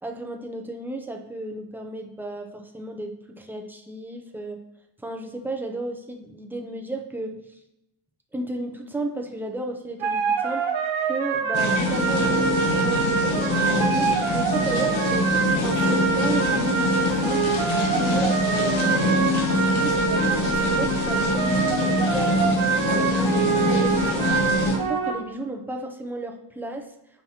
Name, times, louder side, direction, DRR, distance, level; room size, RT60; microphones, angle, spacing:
voice 1, 0.0-4.6 5.0-7.4 8.3-10.7 11.0-15.3 15.6-17.5 17.9-24.4 24.9-26.9, right 1 dB, 5° right, 2 dB, 0.3 m, -33 dB
sound 1, 10.0-25.1, right 6 dB, 80° right, 0.8 m, -25 dB
sound 2, 11.5-24.8, left 2 dB, 75° left, 1.2 m, -24 dB
7.1 x 5.7 x 2.7 m, 0.85 s
wide cardioid pair, 165°, 47 cm